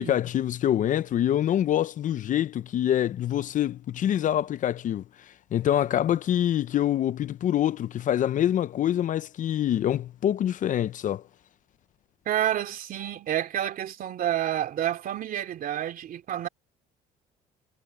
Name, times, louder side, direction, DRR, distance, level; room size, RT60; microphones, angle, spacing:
voice 1, 0.0-5.0 5.5-11.2, left 11 dB, 50° left, 0.6 m, -25 dB
voice 2, 12.3-16.5, right 11 dB, 55° right, 2.9 m, -29 dB
cardioid pair, 110°, 17 cm